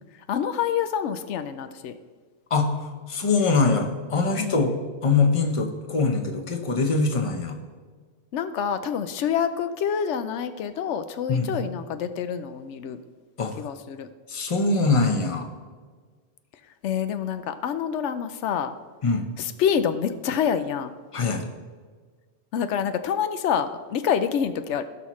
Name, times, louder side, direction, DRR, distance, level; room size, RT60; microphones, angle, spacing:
voice 1, 0.3-1.9 4.4-4.6 8.3-13.0 13.6-14.1 16.8-18.7 19.4-20.9 22.5-24.8, left 8 dB, 85° left, 10 dB, 0.9 m, -27 dB
voice 2, 3.1-4.7 5.0-7.6 11.3-11.5 13.4-13.5 14.3-15.5 19.0-19.3 21.1-21.4, left 3 dB, 30° left, 4 dB, 0.9 m, -23 dB
16.5 x 5.8 x 3.1 m, 1.5 s
omnidirectional pair, 1.2 m